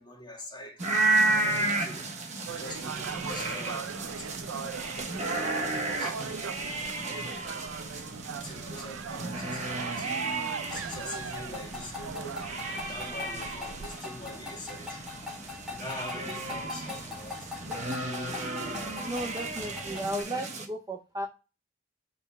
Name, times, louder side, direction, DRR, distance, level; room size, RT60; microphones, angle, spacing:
voice 1, 0.0-2.2 2.5-6.6 7.0-8.1 8.3-15.1 15.4-17.7, left 1 dB, 20° left, 1.5 m, -45 dB
sound 1, 0.8-20.7, right 2 dB, 35° right, 1.0 m, -33 dB
sound 2, 2.5-14.0, right 6 dB, 85° right, 0.4 m, -39 dB
sound 3, 10.7-20.2, left 4 dB, 5° right, 1.8 m, -43 dB
voice 2, 19.0-21.3, right 1 dB, 20° right, 0.6 m, -34 dB
5.3 x 3.3 x 5.5 m
head